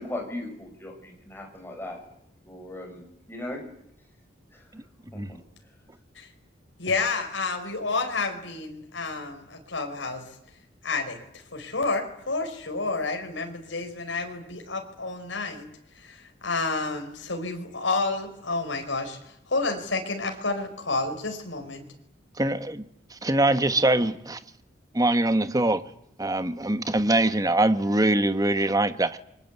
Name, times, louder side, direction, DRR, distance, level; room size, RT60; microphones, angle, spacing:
voice 1, 0.0-2.0 2.4-3.6, left 1 dB, 10° left, 2 dB, 6.9 m, -37 dB
voice 2, 6.8-10.3 10.8-11.2 11.5-15.7 16.0-21.9, left 3 dB, 85° left, 3 dB, 4.9 m, -30 dB
voice 3, 22.4-24.4 24.9-25.8 26.2-29.2, right 2 dB, 20° right, 11 dB, 1.2 m, -23 dB
29.0 x 23.5 x 8.3 m, 0.75 s
head